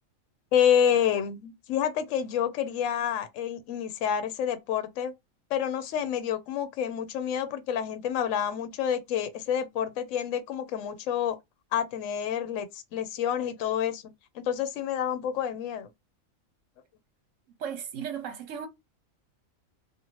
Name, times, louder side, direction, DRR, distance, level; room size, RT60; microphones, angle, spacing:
voice 1, 0.5-5.1 5.5-11.4 11.7-14.0 14.3-15.9, left 9 dB, 70° left, 0.9 m, -28 dB
voice 2, 17.6-18.7, right 8 dB, 70° right, 1.1 m, -35 dB
2.7 x 2.5 x 3.0 m
omnidirectional pair, 1.4 m